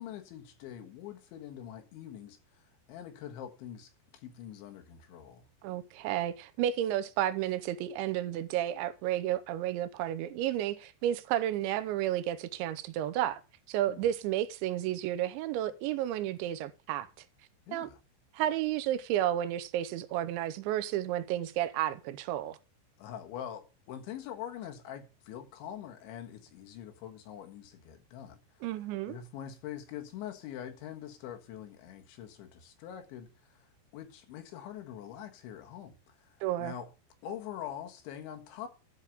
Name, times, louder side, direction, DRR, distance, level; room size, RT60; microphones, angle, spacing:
voice 1, 0.0-5.4 13.9-14.0 17.7-18.0 23.0-28.7 29.1-33.7 33.9-36.9 37.2-38.7, left 10 dB, 85° left, 3.9 m, -44 dB
voice 2, 5.6-13.4 13.7-17.3 17.7-17.9 18.3-22.6 28.6-29.2 36.4-36.7, right 12 dB, 85° right, 3.1 m, -32 dB
13.0 x 4.6 x 8.5 m
omnidirectional pair, 5.2 m